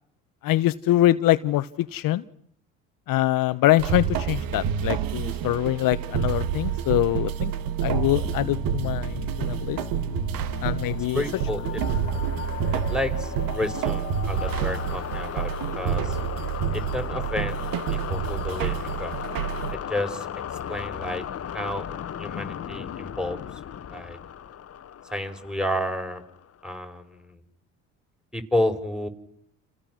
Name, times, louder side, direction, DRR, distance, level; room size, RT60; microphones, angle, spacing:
voice 1, 0.4-2.2 3.1-7.5 7.8-9.8 10.6-11.2, left 15 dB, 55° left, 13 dB, 1.1 m, -24 dB
sound 1, 3.8-19.7, right 8 dB, 60° right, 1.9 m, -28 dB
sound 2, 8.2-26.7, left 9 dB, 40° left, 1.3 m, -36 dB
voice 2, 11.1-11.8 12.7-16.2 16.7-19.2 19.7-20.3 20.7-21.2 21.5-21.8 22.2-23.6 23.9-24.2 25.0-26.2 26.6-27.4 28.3-29.1, left 1 dB, ahead, 8 dB, 5.0 m, -31 dB
30.0 x 29.0 x 6.3 m, 0.69 s
hypercardioid pair, 75°, 39 cm